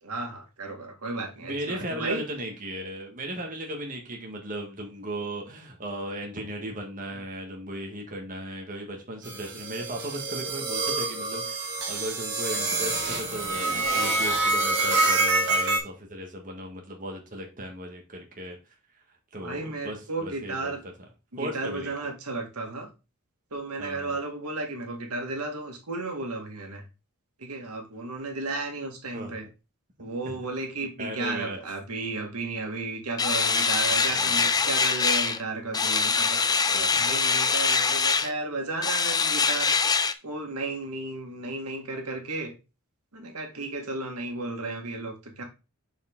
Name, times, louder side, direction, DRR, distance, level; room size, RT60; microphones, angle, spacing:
voice 1, 0.0-2.2 19.4-20.8 21.3-22.9 23.5-26.8 27.4-29.5 30.0-39.7 40.2-42.5 43.1-45.4, right 3 dB, 90° right, 3 dB, 1.8 m, -34 dB
voice 2, 1.4-18.6 19.3-20.9 21.4-21.9 23.8-24.2 29.1-29.5 30.2-30.4 31.0-31.6 34.0-34.6 36.7-37.0, right 1 dB, 40° right, 1 dB, 1.4 m, -36 dB
sound 1, 9.2-15.8, right 2 dB, 55° right, 2.3 m, -26 dB
sound 2, 33.2-35.4 35.7-38.3 38.8-40.1, left 5 dB, 15° left, 0.4 m, -24 dB
6.6 x 4.7 x 3.6 m, 0.29 s
head